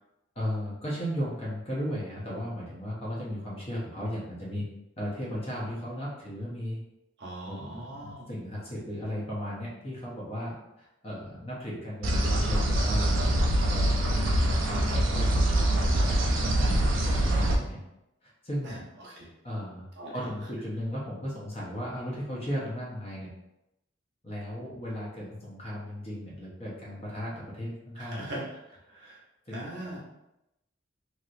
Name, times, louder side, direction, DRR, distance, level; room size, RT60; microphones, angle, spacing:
voice 1, 0.4-4.7 5.0-6.8 7.4-13.2 13.7-17.8 18.4-18.8 19.4-19.9 20.1-23.3 24.2-28.3 29.5-29.6, equal, 30° left, -5 dB, 0.8 m, -36 dB
voice 2, 7.2-8.2 18.6-19.3 20.0-20.3 28.0-28.5 28.9-29.2 29.5-30.0, right 1 dB, 60° right, -4 dB, 0.9 m, -40 dB
sound 1, 12.0-17.5, right 1 dB, 85° right, 0.5 m, -24 dB
3.0 x 2.9 x 2.5 m, 0.89 s
head